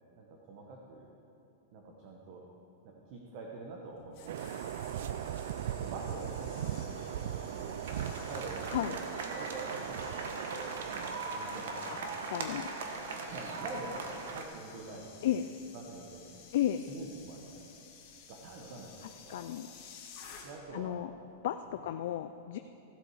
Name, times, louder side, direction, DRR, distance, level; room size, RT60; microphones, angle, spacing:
voice 1, 0.2-1.1 1.7-2.4 2.8-5.1 5.8-12.4 13.2-16.5 16.9-17.8 18.3-19.5 20.4-21.1 21.6-21.8, right 3 dB, 45° right, 0 dB, 1.2 m, -47 dB
sound 1, 3.9-20.8 21.1-21.4, left 6 dB, 40° left, 2.2 m, -54 dB
sound 2, 4.3-11.1, right 10 dB, 65° right, 0.4 m, -39 dB
sound 3, 7.9-14.4, right 3 dB, 85° right, 1.4 m, -40 dB
voice 2, 12.3-12.7 15.2-15.4 16.5-16.8 19.3-19.7 20.7-21.1 21.4-21.6 21.8-22.6, left 12 dB, 60° left, 8 dB, 0.4 m, -32 dB
16.0 x 8.1 x 4.8 m, 2.7 s
supercardioid pair, 165°, 0 cm